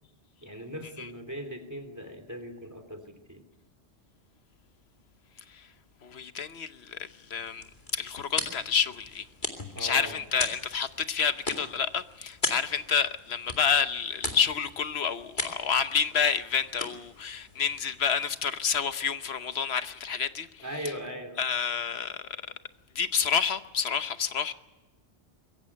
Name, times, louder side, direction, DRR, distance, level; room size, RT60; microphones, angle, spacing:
voice 1, 0.4-3.4 9.7-10.2 20.6-21.4, equal, 15° right, 3.0 m, -39 dB
voice 2, 6.0-7.6 7.9-9.2 9.8-20.5 21.4-22.2 22.9-24.5, left 7 dB, 70° left, 1.2 m, -29 dB
sound 1, 7.3-18.5, left 2 dB, 45° left, 2.6 m, -39 dB
22.5 x 15.5 x 9.9 m
omnidirectional pair, 1.1 m